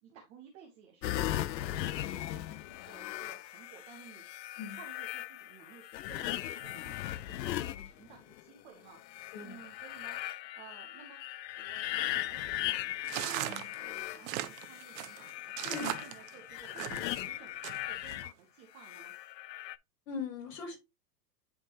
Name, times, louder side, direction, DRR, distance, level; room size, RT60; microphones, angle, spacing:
voice 1, 0.0-15.7 16.0-19.1, right 7 dB, 15° right, 1 dB, 0.4 m, -55 dB
sound 1, 1.0-8.4 9.0-18.3 18.8-19.8, left 14 dB, 85° left, 0.6 m, -38 dB
sound 2, 13.1-17.2 17.6-18.2, right 14 dB, 50° right, 0.8 m, -38 dB
voice 2, 15.6-16.0 20.1-20.8, left 4 dB, 50° left, 1 dB, 3.3 m, -40 dB
10.5 x 3.6 x 2.7 m, 0.22 s
hypercardioid pair, 135°, 50 cm